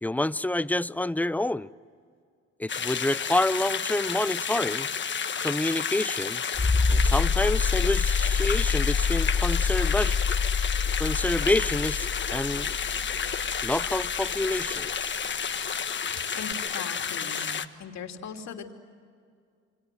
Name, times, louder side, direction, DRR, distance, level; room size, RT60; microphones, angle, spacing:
voice 1, 0.0-1.7 2.6-4.9 5.4-6.4 6.9-10.2 11.0-12.8 13.6-15.1, left 1 dB, 5° left, 0.6 m, -28 dB
sound 1, 2.7-17.6, left 7 dB, 40° left, 1.4 m, -31 dB
sound 2, 6.5-15.0 16.5-16.6, left 5 dB, 20° left, 3.0 m, -26 dB
voice 2, 16.0-17.5 17.8-18.7, left 6 dB, 65° left, 3.1 m, -39 dB
29.0 x 25.0 x 7.8 m
cardioid pair, 80°, 30 cm